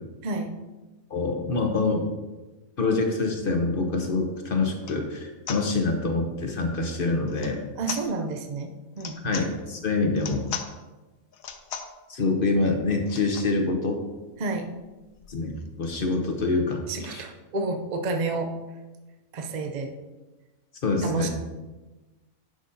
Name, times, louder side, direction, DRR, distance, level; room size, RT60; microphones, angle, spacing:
voice 1, 0.2-0.5 7.8-8.7 9.0-9.4 14.4-14.7 16.9-18.5 19.3-19.9 21.0-21.3, right 3 dB, 55° right, 4 dB, 0.4 m, -30 dB
voice 2, 1.1-2.1 2.8-7.6 9.2-10.5 12.1-14.0 15.3-17.2 20.8-21.3, left 3 dB, 45° left, 4 dB, 0.9 m, -26 dB
sound 1, 4.1-4.2 4.8-5.0 5.5-5.6 7.3-7.6 7.8-8.1 8.9-9.5 10.1-10.7 11.3-12.0 13.0-13.5 14.1-14.2 14.3-14.5 14.8-16.2, left 7 dB, 70° left, 1.1 m, -38 dB
10.0 x 6.5 x 2.7 m, 1.2 s
omnidirectional pair, 1.6 m